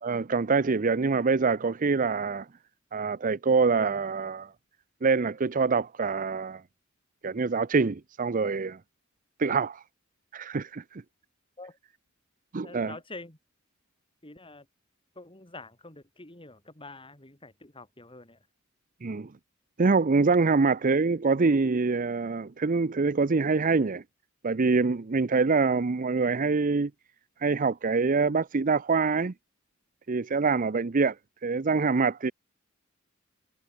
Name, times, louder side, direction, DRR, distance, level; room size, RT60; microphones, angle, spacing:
voice 1, 0.0-2.5 2.9-4.5 5.0-6.6 7.2-8.8 9.4-9.8 10.3-11.0 12.5-13.0 19.0-19.3 19.8-24.0 24.4-26.9 27.4-29.3 30.1-31.1 31.4-32.3, right 4 dB, 40° right, 0.6 m, -25 dB
voice 2, 12.6-13.4 14.2-14.6 15.2-18.4, left 2 dB, 25° left, 5.2 m, -46 dB
head